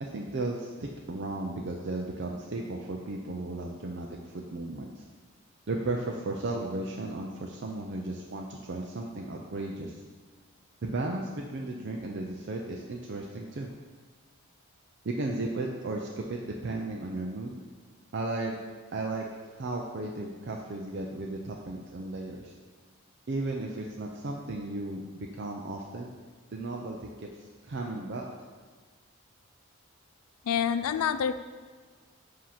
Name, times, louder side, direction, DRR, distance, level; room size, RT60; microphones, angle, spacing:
voice 1, 0.0-5.0 5.7-10.0 10.8-13.7 15.0-17.5 18.1-18.6 18.9-19.2 19.5-22.5 23.3-26.1 26.5-28.3, right 2 dB, 50° right, 0 dB, 0.5 m, -35 dB
voice 2, 30.5-31.4, left 8 dB, 80° left, 12 dB, 0.3 m, -27 dB
7.5 x 2.8 x 5.7 m, 1.5 s
head